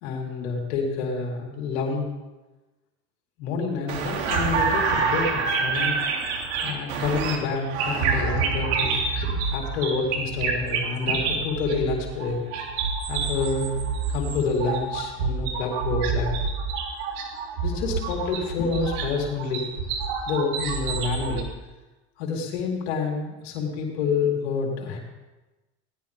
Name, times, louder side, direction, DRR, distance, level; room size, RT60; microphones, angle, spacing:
voice 1, 0.0-2.1 3.4-6.0 6.6-12.4 13.1-13.7 14.1-16.3 17.6-19.7 20.3-21.5 22.2-25.0, left 4 dB, 80° left, 0 dB, 4.2 m, -28 dB
sound 1, 3.9-21.4, right 5 dB, 80° right, 3.2 m, -27 dB
19.5 x 18.0 x 3.6 m, 1.1 s
supercardioid pair, 100°, 32 cm